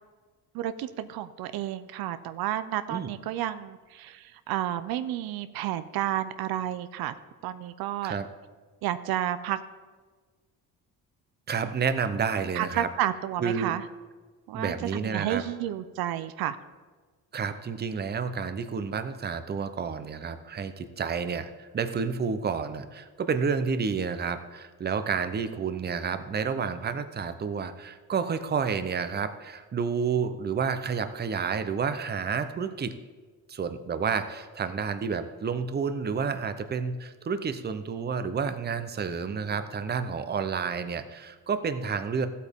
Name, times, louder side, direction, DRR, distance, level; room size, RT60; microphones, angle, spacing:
voice 1, 0.5-7.1 7.4-8.2 8.8-9.6 12.5-13.8 14.5-16.6, right 12 dB, 80° right, 12 dB, 0.6 m, -31 dB
voice 2, 11.5-12.9 13.4-13.7 14.5-15.4 17.3-33.0 33.5-42.3, right 6 dB, 25° right, 10 dB, 0.7 m, -30 dB
14.0 x 8.4 x 3.6 m, 1.4 s
cardioid pair, 115°, 36 cm